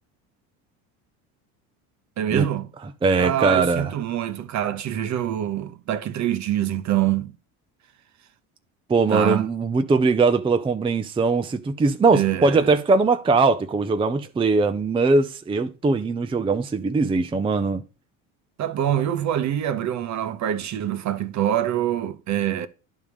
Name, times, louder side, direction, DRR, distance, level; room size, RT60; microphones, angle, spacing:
voice 1, 2.2-2.7 3.2-7.3 9.1-9.5 12.1-12.7 18.6-22.7, right 11 dB, 45° right, 0.9 m, -25 dB
voice 2, 3.0-3.9 8.9-17.8, right 4 dB, 15° right, 0.6 m, -21 dB
10.5 x 3.7 x 4.9 m
supercardioid pair, 90°, 39 cm